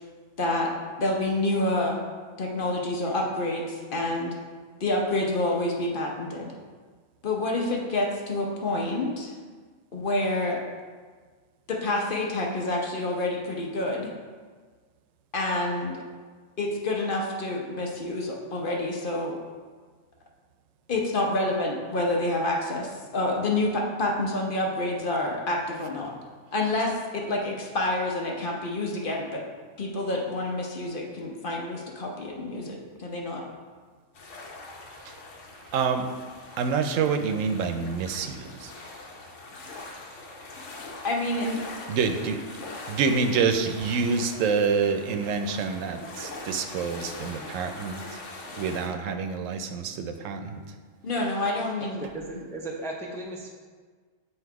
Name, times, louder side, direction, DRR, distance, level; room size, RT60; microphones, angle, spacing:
voice 1, 0.4-0.7 1.0-2.0 2.4-4.3 4.8-6.5 7.2-9.3 9.9-10.6 11.7-14.1 15.3-16.0 16.6-19.4 20.9-26.1 26.5-29.4 29.8-33.4 41.0-41.6 51.0-52.0, left 2 dB, 50° left, -1 dB, 0.9 m, -28 dB
sound 1, 34.1-48.9, left 2 dB, 70° left, 1.1 m, -42 dB
voice 2, 35.7-36.0 36.6-38.7 41.9-42.4 42.9-48.0 48.6-50.6, right 5 dB, 90° right, 7 dB, 1.0 m, -27 dB
voice 3, 52.0-53.5, right 1 dB, 5° left, -2 dB, 0.4 m, -36 dB
7.9 x 2.9 x 4.6 m, 1.5 s
omnidirectional pair, 1.3 m